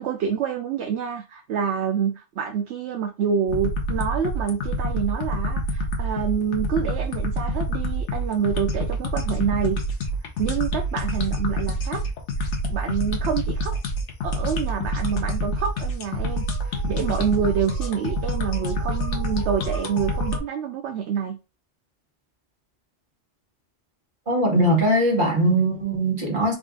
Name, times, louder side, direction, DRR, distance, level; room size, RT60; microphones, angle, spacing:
voice 1, 0.0-9.8 10.4-12.0 12.4-13.8 14.2-21.4, right 7 dB, 70° right, 0.9 m, -27 dB
sound 1, 3.5-20.4, equal, 75° left, 1.1 m, -27 dB
voice 2, 24.3-26.5, right 1 dB, 45° right, 1.5 m, -20 dB
3.9 x 2.5 x 3.6 m
omnidirectional pair, 1.2 m